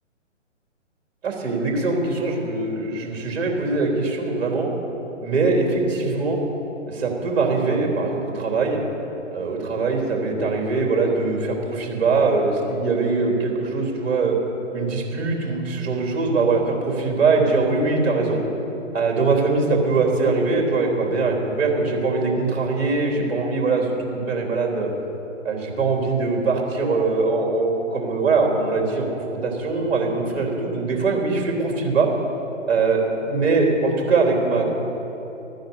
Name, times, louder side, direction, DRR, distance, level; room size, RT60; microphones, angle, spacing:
voice 1, 1.2-4.7 5.2-6.4 6.9-8.8 9.3-14.3 14.7-18.4 18.9-24.9 25.4-29.1 29.4-32.1 32.7-33.0 33.3-34.7, right 3 dB, 55° right, 0 dB, 3.4 m, -22 dB
14.0 x 10.5 x 7.0 m, 3.0 s
figure-of-eight pair, 140°, 37 cm